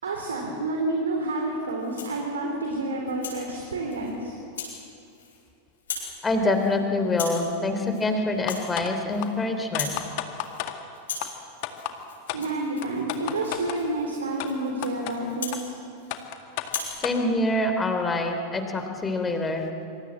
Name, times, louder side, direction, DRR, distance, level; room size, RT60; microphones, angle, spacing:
voice 1, 0.0-4.4 12.3-15.8, right 2 dB, 70° right, 1 dB, 3.8 m, -29 dB
Rattle (instrument), 1.8-2.2 2.7-3.4 3.9-4.1 4.5-4.8 5.1-5.5 5.7-6.1 6.4-6.7 7.1-7.5 7.8-8.1 8.3-9.4 9.6-10.0 10.3-10.7 10.9-16.3 16.6-17.0, left 5 dB, 65° left, 7.4 m, -38 dB
voice 2, 6.2-9.9 17.0-19.7, left 2 dB, 15° left, 5 dB, 3.4 m, -25 dB
sound 1, 8.5-8.9 9.2-9.3 9.7-10.7 11.2-11.3 11.6-11.9 12.3-12.4 12.8-13.8 14.4-14.5 14.8-15.1 15.5-15.6 16.1-17.2, left 14 dB, 45° left, 2.0 m, -32 dB
26.0 x 26.0 x 7.6 m, 2.7 s
figure-of-eight pair, 90°, 0 cm